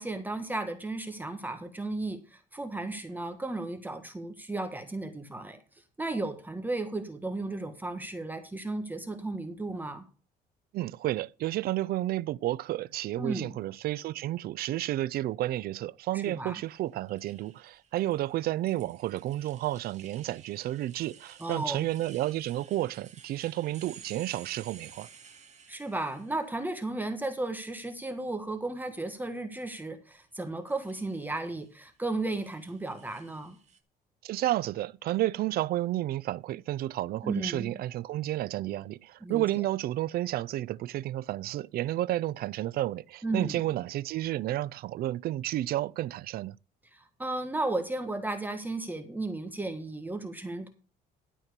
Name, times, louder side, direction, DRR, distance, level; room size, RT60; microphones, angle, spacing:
voice 1, 0.0-5.6 6.0-10.0 13.2-13.5 16.1-16.6 21.4-21.9 25.7-33.6 37.2-37.8 39.2-39.4 43.2-43.6 46.9-50.7, right 2 dB, 10° right, 1.5 m, -34 dB
voice 2, 10.7-25.1 34.2-46.6, right 14 dB, 65° right, 0.5 m, -31 dB
sound 1, 16.5-26.8 27.2-27.9 30.7-31.7 32.3-33.8, right 7 dB, 45° right, 1.9 m, -54 dB
12.5 x 4.5 x 6.7 m
cardioid pair, 110°, 17 cm